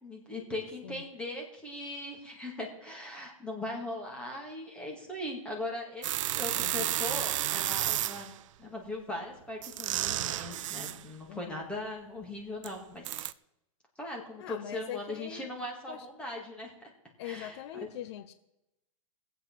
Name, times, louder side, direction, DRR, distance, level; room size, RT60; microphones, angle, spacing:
voice 1, 0.0-6.1 6.3-8.3 8.6-13.3 14.0-16.9 17.2-17.9, left 1 dB, 5° left, 0 dB, 2.1 m, -39 dB
sound 1, 6.0-8.4 9.6-11.0 12.6-12.7 13.0-13.3, right 14 dB, 60° right, 0.5 m, -32 dB
voice 2, 11.3-11.6 14.4-15.5 15.9-16.1 17.2-18.3, left 12 dB, 50° left, 11 dB, 0.7 m, -42 dB
19.5 x 8.0 x 4.6 m, 0.88 s
hypercardioid pair, 150°, 18 cm